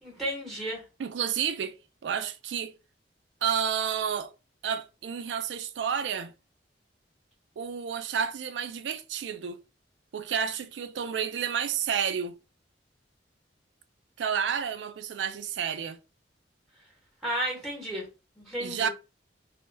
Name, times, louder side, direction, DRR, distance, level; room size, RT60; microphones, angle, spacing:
voice 1, 0.0-0.8 17.2-18.0 18.4-18.9, right 1 dB, ahead, 0.9 m, -33 dB
voice 2, 1.0-1.8 2.0-2.8 3.4-4.3 4.6-6.3 7.6-9.6 10.1-12.4 14.2-16.0 18.6-18.9, right 7 dB, 75° right, 0.4 m, -30 dB
2.2 x 2.1 x 3.2 m
head